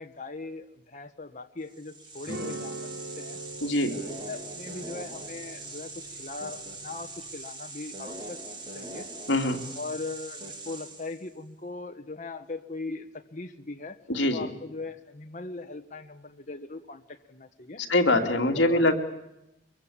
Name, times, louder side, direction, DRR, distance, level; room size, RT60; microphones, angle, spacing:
voice 1, 0.0-3.4 3.8-8.4 8.7-9.1 9.7-14.0 14.3-17.8 18.5-19.0, left 3 dB, 40° left, 4 dB, 1.4 m, -40 dB
sound 1, 1.7-11.3, right 2 dB, 25° right, 2.9 m, -41 dB
sound 2, 2.2-7.4, right 2 dB, 70° right, 4.3 m, -43 dB
voice 2, 3.6-3.9 9.3-9.6 14.1-14.5 17.8-19.0, left 1 dB, 60° left, 3 dB, 2.7 m, -23 dB
24.0 x 23.5 x 8.6 m, 0.89 s
head